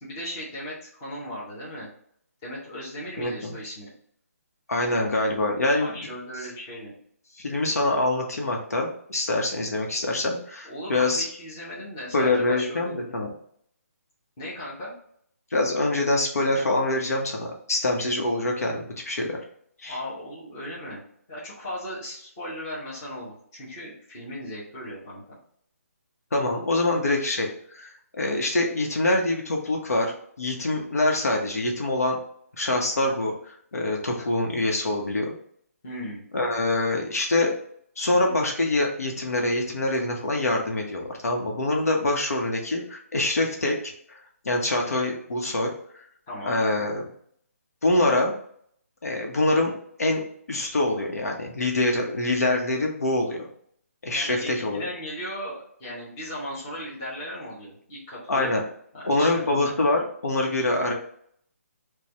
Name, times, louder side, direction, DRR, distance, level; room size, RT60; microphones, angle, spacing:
voice 1, 0.0-1.9 2.4-3.9 4.8-5.1 5.7-6.9 10.6-13.3 14.4-14.9 19.8-21.0 21.3-25.4 35.8-36.3 46.3-46.6 54.1-58.6 58.9-59.7, equal, 10° left, -8 dB, 0.7 m, -37 dB
voice 2, 3.2-3.5 4.7-6.0 7.4-11.3 12.1-13.3 15.5-19.3 19.8-20.0 26.3-27.5 27.7-30.1 30.4-32.2 32.6-35.3 36.3-37.5 38.0-43.8 44.1-44.2 44.4-45.7 46.4-47.1 47.8-48.3 49.0-49.7 50.0-53.4 54.0-54.8 58.3-58.6 59.1-60.9, left 2 dB, 75° left, 1 dB, 1.0 m, -25 dB
3.2 x 2.3 x 4.1 m, 0.65 s
hypercardioid pair, 180°, 8 cm